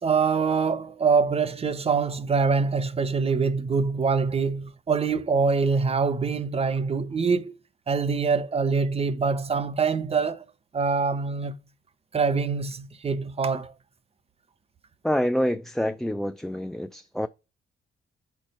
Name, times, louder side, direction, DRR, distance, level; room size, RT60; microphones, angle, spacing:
voice 1, 0.0-7.5 7.9-10.4 10.7-11.6 12.1-13.7, right 5 dB, 30° right, 0.8 m, -24 dB
voice 2, 15.0-17.3, equal, ahead, 0.4 m, -27 dB
4.6 x 4.3 x 5.4 m
cardioid pair, 90°, 20 cm